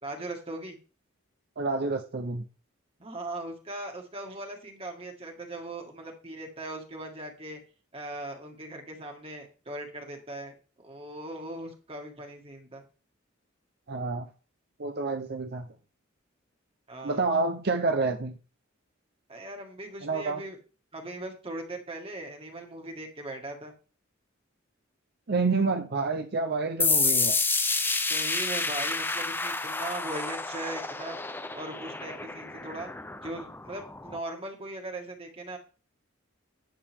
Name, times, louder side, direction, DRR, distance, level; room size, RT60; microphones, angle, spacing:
voice 1, 0.0-0.8 3.0-7.6 7.9-10.6 10.8-12.8 16.9-17.3 19.3-20.6 20.9-23.7 28.1-31.2 31.5-32.9 33.2-35.6, right 1 dB, 30° right, 2 dB, 1.8 m, -39 dB
voice 2, 1.6-2.4 13.9-14.3 14.8-15.7 17.0-18.4 20.0-20.4 25.3-27.4, right 3 dB, 50° right, 5 dB, 0.7 m, -28 dB
sound 1, 26.8-34.2, left 3 dB, 10° left, 0.5 m, -29 dB
10.5 x 6.8 x 3.6 m, 0.35 s
head